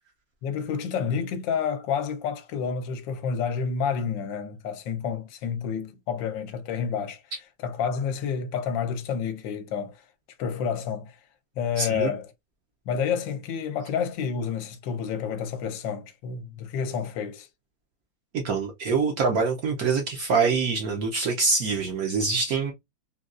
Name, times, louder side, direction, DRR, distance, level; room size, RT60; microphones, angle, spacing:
voice 1, 0.4-7.2 7.6-10.0 10.4-11.2 11.6-12.3 12.9-17.5, left 6 dB, 75° left, 1.3 m, -29 dB
voice 2, 11.8-12.1 18.3-22.7, right 4 dB, 70° right, 0.9 m, -25 dB
3.9 x 2.2 x 2.3 m
omnidirectional pair, 2.1 m